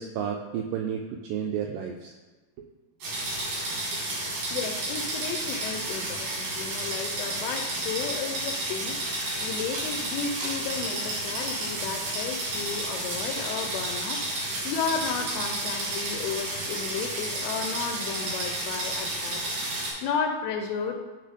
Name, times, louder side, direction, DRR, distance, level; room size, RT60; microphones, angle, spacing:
voice 1, 0.0-2.1 4.3-4.4, right 8 dB, 90° right, 2 dB, 1.9 m, -32 dB
sound 1, 3.0-19.9, right 1 dB, 70° right, 4.4 m, -31 dB
voice 2, 4.5-19.4 19.7-21.0, left 6 dB, 80° left, 4 dB, 2.4 m, -33 dB
10.0 x 3.4 x 5.1 m, 1.2 s
omnidirectional pair, 4.4 m